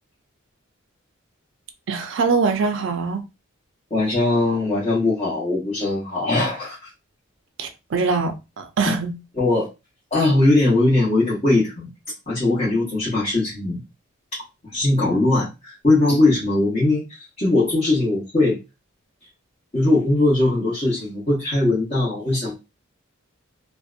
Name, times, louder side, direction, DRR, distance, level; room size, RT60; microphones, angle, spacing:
voice 1, 1.9-3.2 7.6-9.1, right 4 dB, 65° right, 0.4 m, -23 dB
voice 2, 3.9-6.9 8.9-9.0 9.3-9.7 10.1-11.9 12.3-13.8 14.3-14.4 14.7-18.6 19.7-22.6, left 2 dB, 30° left, 0.9 m, -20 dB
2.6 x 2.1 x 2.4 m
head